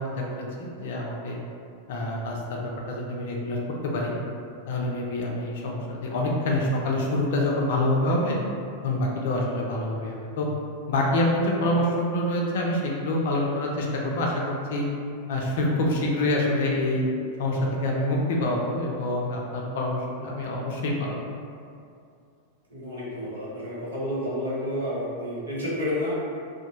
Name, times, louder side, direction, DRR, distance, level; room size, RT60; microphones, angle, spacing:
voice 1, 0.0-1.4 1.9-3.6 3.8-4.1 4.7-8.4 8.8-10.5 10.9-14.8 15.3-17.0 17.4-21.1, left 1 dB, 55° left, -1 dB, 0.4 m, -26 dB
voice 2, 22.7-26.1, left 1 dB, 75° right, -8 dB, 0.8 m, -30 dB
2.6 x 2.2 x 2.9 m, 2.4 s
figure-of-eight pair, 90°, 0 cm